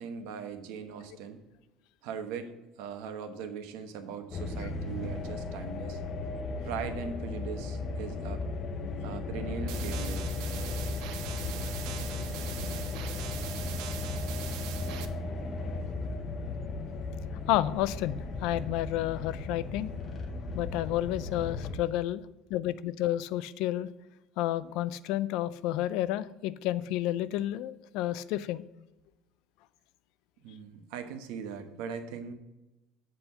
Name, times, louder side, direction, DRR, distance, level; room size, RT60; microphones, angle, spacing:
voice 1, 0.0-1.4 2.0-6.0 6.6-8.4 9.0-10.3 30.4-32.3, right 6 dB, 80° right, 7 dB, 1.1 m, -40 dB
sound 1, 4.3-21.8, left 3 dB, 30° left, 0.6 m, -36 dB
sound 2, 9.7-15.1, right 10 dB, 60° right, 0.7 m, -42 dB
voice 2, 17.5-19.9 20.5-23.9 24.4-28.6, left 14 dB, 65° left, 17 dB, 0.3 m, -31 dB
7.7 x 4.2 x 6.8 m, 1.0 s
cardioid pair, 180°, 0 cm